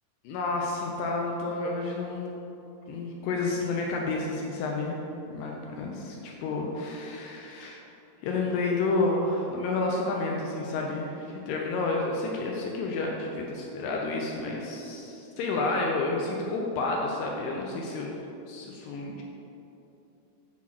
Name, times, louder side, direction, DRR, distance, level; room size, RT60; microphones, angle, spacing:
voice 1, 0.2-2.3 2.9-5.0 5.3-7.8 8.2-18.2 18.5-19.2, left 3 dB, 80° left, -1 dB, 2.6 m, -30 dB
8.6 x 4.2 x 5.8 m, 2.9 s
omnidirectional pair, 5.1 m